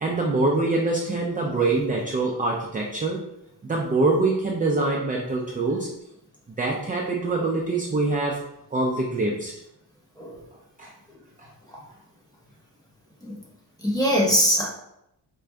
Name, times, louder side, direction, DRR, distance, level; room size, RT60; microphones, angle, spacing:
voice 1, 0.0-3.2 3.6-5.9 6.6-8.4 8.7-9.5 10.8-10.9 11.4-11.5, right 2 dB, 20° right, -1 dB, 0.3 m, -24 dB
voice 2, 13.8-14.7, equal, 10° left, -3 dB, 0.8 m, -22 dB
4.5 x 2.5 x 3.3 m, 0.81 s
wide cardioid pair, 175°, 42 cm